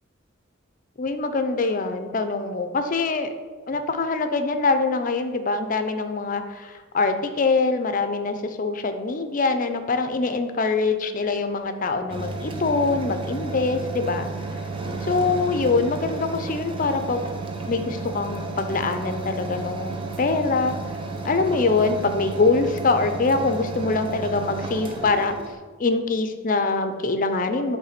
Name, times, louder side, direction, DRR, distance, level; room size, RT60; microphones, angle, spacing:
voice 1, 1.0-3.3 3.7-14.3 15.1-17.3 17.7-20.7 21.2-25.3 25.8-27.8, left 3 dB, 45° left, 8 dB, 0.6 m, -24 dB
sound 1, 12.1-25.5, right 3 dB, 25° right, 0.7 m, -32 dB
8.8 x 3.4 x 5.8 m, 1.5 s
head